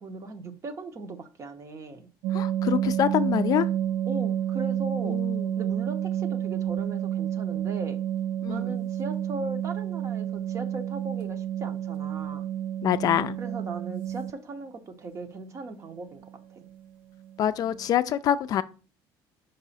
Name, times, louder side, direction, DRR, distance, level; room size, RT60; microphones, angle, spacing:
voice 1, 0.0-2.1 4.1-5.2 5.6-8.0 8.5-12.5 13.4-16.7, right 2 dB, 35° right, 0.8 m, -38 dB
sound 1, 2.2-14.3 16.2-16.4 16.7-16.8 17.2-17.3 17.6-17.9, right 11 dB, 80° right, 0.4 m, -30 dB
voice 2, 2.3-3.7 5.0-5.4 8.4-8.8 12.8-13.4 17.4-18.6, left 10 dB, 45° left, 0.4 m, -25 dB
5.4 x 4.8 x 4.1 m
cardioid pair, 130°, 9 cm